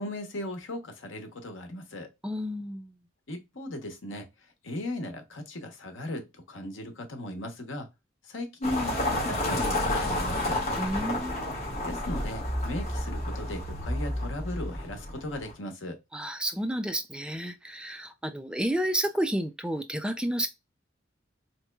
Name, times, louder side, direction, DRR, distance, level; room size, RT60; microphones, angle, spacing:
voice 1, 0.0-2.1 3.3-4.3 4.6-7.9 8.2-10.6 11.8-16.0, left 1 dB, 85° left, 1.0 m, -37 dB
voice 2, 2.2-2.9 10.8-11.6 16.1-20.5, right 1 dB, 5° right, 0.3 m, -31 dB
sound 1, 8.6-15.5, left 1 dB, 35° left, 1.5 m, -30 dB
4.1 x 3.0 x 2.2 m
head